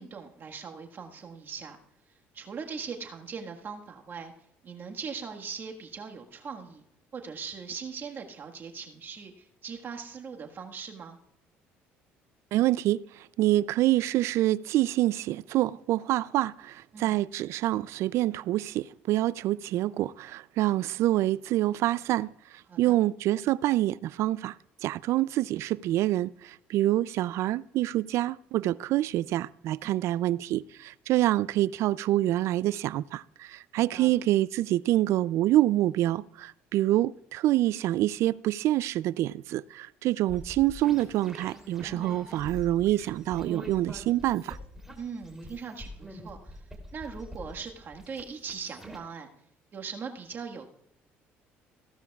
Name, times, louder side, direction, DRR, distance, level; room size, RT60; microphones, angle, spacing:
voice 1, 0.0-1.8 2.3-4.3 4.6-6.8 7.1-11.2 16.9-17.2 22.7-23.0 29.8-30.1 33.8-34.1 45.0-46.6 46.9-49.3 49.7-50.7, right 6 dB, 45° right, 1.5 m, -40 dB
voice 2, 12.5-22.3 22.8-24.5 24.8-44.6, right 15 dB, 65° right, 0.3 m, -26 dB
sound 1, 40.3-49.0, equal, 5° right, 3.0 m, -45 dB
16.0 x 12.0 x 2.3 m
supercardioid pair, 75°, 5 cm